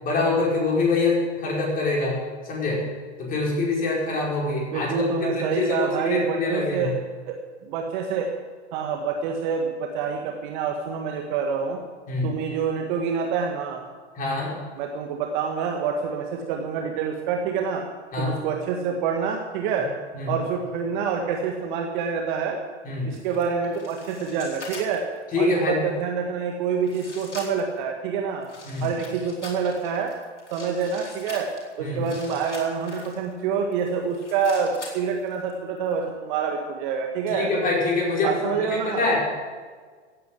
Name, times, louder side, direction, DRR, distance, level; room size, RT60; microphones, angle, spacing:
voice 1, 0.0-2.9 3.2-6.9 12.1-12.3 14.1-14.6 18.1-18.4 20.1-20.3 22.8-23.2 25.3-25.9 28.6-28.9 31.8-32.0 37.3-39.2, left 3 dB, 25° left, -3 dB, 5.0 m, -25 dB
voice 2, 4.7-6.9 7.3-8.3 8.7-11.8 12.2-13.8 14.8-17.8 18.2-19.9 20.3-22.6 23.0-25.0 25.4-28.5 28.8-30.1 30.5-31.5 31.8-37.5 38.2-39.1, right 6 dB, 45° right, 2 dB, 1.8 m, -27 dB
sound 1, 23.1-25.2 26.0-26.1 26.8-27.8 28.4-33.3 33.7-35.5 35.8-35.9, left 3 dB, 80° left, 4.4 m, -43 dB
16.0 x 9.2 x 7.6 m, 1.6 s
figure-of-eight pair, 110°, 34 cm